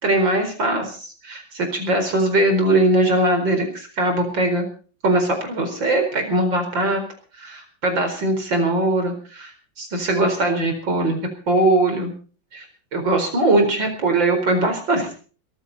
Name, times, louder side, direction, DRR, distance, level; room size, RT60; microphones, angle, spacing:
voice 1, 0.0-4.7 5.0-7.0 7.3-9.5 9.8-12.1 12.5-12.7 12.9-15.1, right 2 dB, 75° right, 5 dB, 5.3 m, -21 dB
21.0 x 14.5 x 4.2 m, 0.39 s
omnidirectional pair, 2.0 m